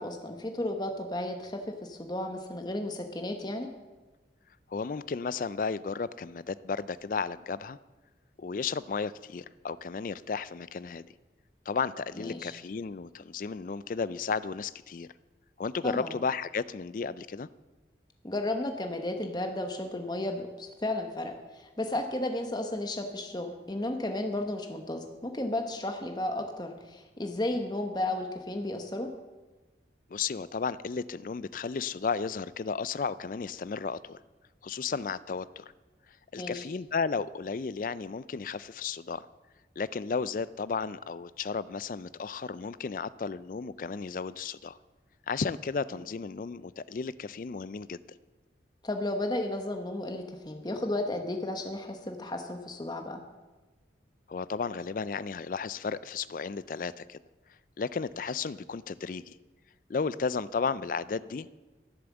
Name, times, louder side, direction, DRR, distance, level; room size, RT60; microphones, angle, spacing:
voice 1, 0.0-3.7 12.1-12.5 15.8-16.2 18.2-29.1 36.4-36.7 48.8-53.2, left 1 dB, 25° left, 4 dB, 1.0 m, -33 dB
voice 2, 4.7-7.8 8.4-11.0 11.7-15.1 15.6-17.5 30.1-34.2 34.6-35.6 36.3-39.3 39.8-44.8 45.3-48.0 54.3-57.2 57.8-59.3 59.9-61.5, left 5 dB, 50° left, 17 dB, 0.4 m, -33 dB
11.5 x 11.5 x 7.2 m, 1.2 s
head